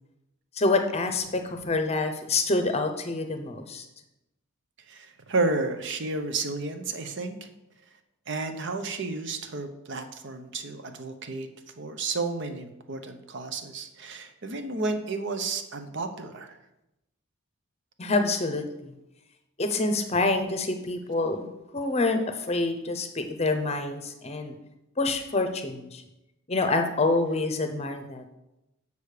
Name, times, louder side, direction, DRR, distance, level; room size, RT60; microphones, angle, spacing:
voice 1, 0.6-3.8 18.0-18.9 19.6-21.5 21.7-24.5 25.0-26.0 26.5-28.2, left 3 dB, 30° left, 6 dB, 0.7 m, -27 dB
voice 2, 4.9-7.5 8.3-11.5 11.8-16.6, right 3 dB, 55° right, 7 dB, 0.8 m, -32 dB
6.8 x 5.0 x 6.6 m, 0.91 s
head